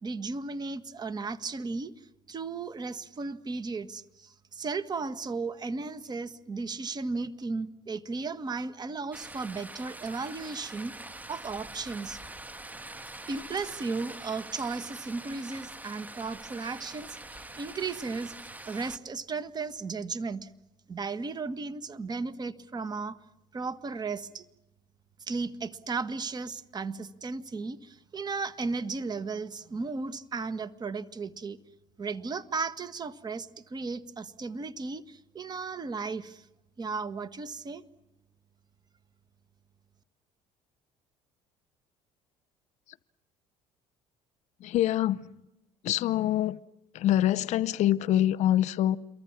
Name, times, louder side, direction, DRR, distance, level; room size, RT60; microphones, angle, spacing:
voice 1, 0.0-11.0 11.3-12.2 13.3-18.3 18.7-20.5 20.9-23.2 23.5-24.4 25.3-31.6 32.0-36.5 36.8-37.8, right 4 dB, 30° right, 1.7 m, -35 dB
sound 1, 9.1-19.0, right 2 dB, 10° right, 1.5 m, -44 dB
voice 2, 44.6-45.3 45.8-46.6 46.9-49.0, left 12 dB, 65° left, 0.8 m, -25 dB
28.0 x 23.5 x 7.4 m
cardioid pair, 100°, 13 cm